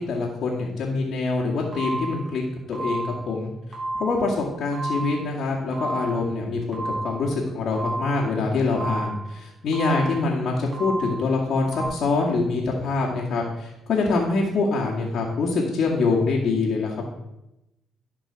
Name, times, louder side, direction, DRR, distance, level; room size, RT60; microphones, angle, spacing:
voice 1, 0.1-2.4 2.7-3.5 3.9-17.1, left 3 dB, 65° left, -7 dB, 2.1 m, -25 dB
sound 1, 1.7-2.3 2.7-3.3 3.7-4.3 4.7-5.3 5.7-6.3 6.7-7.3 7.7-8.3 8.7-9.3 9.7-10.3 10.7-11.3 11.7-11.9, right 2 dB, 35° right, 3.9 m, -31 dB
11.5 x 5.4 x 5.9 m, 0.91 s
cardioid pair, 90°, 0 cm